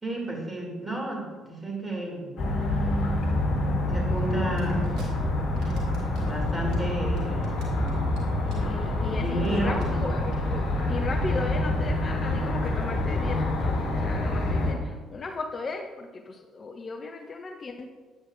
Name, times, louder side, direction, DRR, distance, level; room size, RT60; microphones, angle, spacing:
voice 1, 0.0-2.4 3.9-4.9 6.2-7.5 9.2-10.0, right 1 dB, 20° right, -2 dB, 2.4 m, -31 dB
sound 1, 2.4-14.7, left 1 dB, 60° left, 1.3 m, -27 dB
sound 2, 4.6-5.1 5.4-6.2 6.5-8.2 8.5-8.8 9.0-9.1 9.4-9.5 9.7-9.9 10.2-10.4, right 3 dB, 65° right, 1.9 m, -52 dB
voice 2, 8.1-17.9, left 3 dB, 40° left, 6 dB, 0.5 m, -36 dB
8.7 x 8.3 x 2.5 m, 1.4 s
hypercardioid pair, 50°, 0 cm